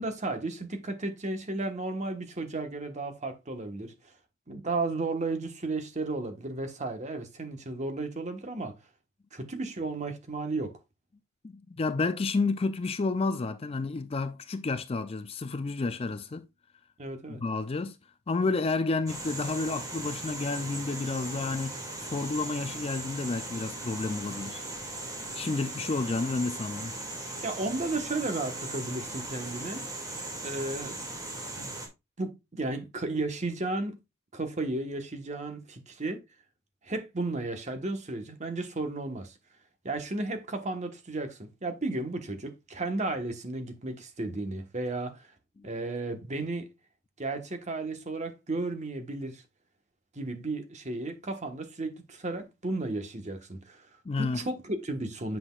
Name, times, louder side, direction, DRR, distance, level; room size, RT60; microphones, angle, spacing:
voice 1, 0.0-4.1 4.5-8.8 9.3-10.7 17.0-17.4 27.4-29.8 30.4-31.0 31.6-31.7 32.2-34.0 34.3-36.2 36.8-39.4 39.8-45.3 45.6-46.7 47.2-49.4 50.1-53.9 54.2-55.4, right 2 dB, 35° right, 1.3 m, -34 dB
voice 2, 11.4-16.5 17.3-18.0 18.3-21.7 22.0-24.6 25.3-26.9 54.1-54.4, left 3 dB, 25° left, 0.4 m, -30 dB
sound 1, 19.1-31.9, right 2 dB, 15° right, 2.2 m, -38 dB
7.9 x 5.9 x 2.4 m
head